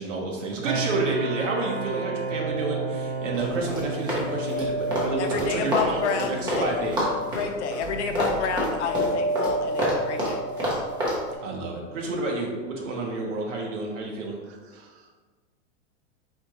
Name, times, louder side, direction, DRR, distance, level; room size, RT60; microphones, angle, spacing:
voice 1, 0.0-7.1 11.4-14.4, right 2 dB, 85° right, -1 dB, 1.2 m, -30 dB
sound 1, 0.6-13.5, right 4 dB, 45° right, 0.5 m, -36 dB
sound 2, 3.1-12.2, equal, 30° left, 0.6 m, -33 dB
Run, 3.3-6.7 6.9-11.2, equal, 10° right, 0.7 m, -28 dB
voice 2, 5.2-6.8 7.3-10.4, left 6 dB, 70° left, 5 dB, 0.7 m, -30 dB
voice 3, 14.4-15.2, right 5 dB, 60° right, 3 dB, 0.9 m, -57 dB
4.3 x 3.7 x 3.0 m, 1.4 s
supercardioid pair, 165°, 36 cm